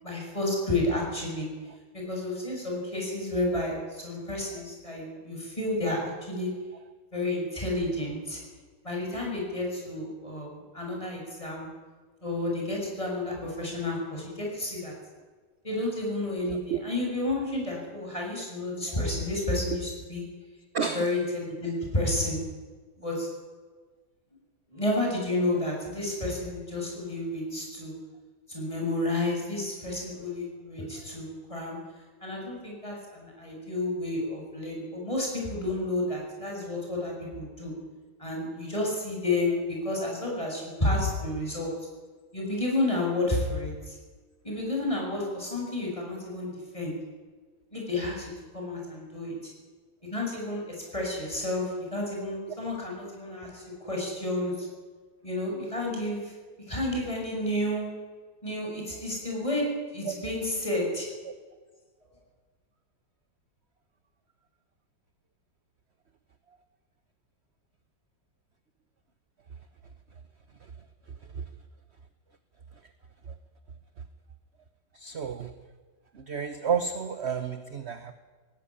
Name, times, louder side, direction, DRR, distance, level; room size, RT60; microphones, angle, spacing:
voice 1, 0.0-1.5 1.9-6.5 7.1-8.4 8.8-11.7 12.2-14.9 15.6-20.2 20.8-22.4 23.0-23.3 24.7-27.9 28.5-31.8 32.2-37.7 38.2-41.7 42.3-43.9 44.4-46.9 47.7-49.5 50.1-54.7 55.2-56.3 56.7-57.9 58.4-59.7 59.9-61.1, left 2 dB, 15° left, -1 dB, 7.3 m, -31 dB
voice 2, 16.4-16.8 19.7-19.8 20.7-21.1 60.1-60.2 74.9-75.5 76.2-78.1, right 6 dB, 45° right, 10 dB, 1.0 m, -31 dB
18.0 x 17.0 x 9.9 m, 1.4 s
omnidirectional pair, 2.0 m